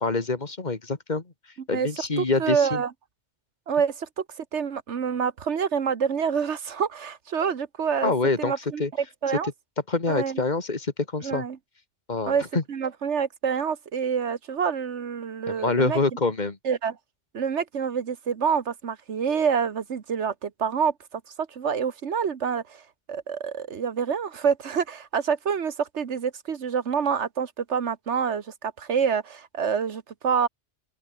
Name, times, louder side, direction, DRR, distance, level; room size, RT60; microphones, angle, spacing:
voice 1, 0.0-1.2 1.7-2.8 8.0-8.5 8.8-8.9 9.9-11.5 12.1-12.6 15.5-16.6, left 3 dB, 40° left, 2.0 m, -26 dB
voice 2, 2.2-2.9 3.7-8.1 8.4-9.5 10.1-10.4 11.2-11.6 12.3-16.0 16.6-17.0 17.3-22.8 23.1-30.5, right 6 dB, 80° right, 1.5 m, -27 dB
open air
omnidirectional pair, 1.2 m